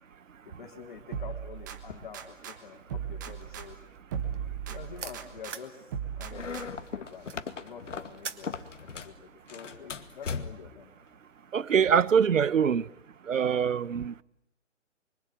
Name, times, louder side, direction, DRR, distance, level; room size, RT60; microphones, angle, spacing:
voice 1, 0.4-3.8 4.7-5.9 6.2-8.5 8.9-10.9, left 6 dB, 40° left, 3.6 m, -46 dB
sound 1, 1.1-2.6 2.9-5.6 5.9-6.9, right 8 dB, 15° right, 1.3 m, -37 dB
sound 2, 3.4-5.8 6.1-8.5, right 6 dB, 70° right, 2.7 m, -43 dB
sound 3, 6.3-9.2 9.5-10.8, left 5 dB, 70° left, 2.3 m, -38 dB
voice 2, 11.5-12.9 13.3-14.2, right 7 dB, 85° right, 1.1 m, -24 dB
25.5 x 25.0 x 9.2 m
hypercardioid pair, 175°, 38 cm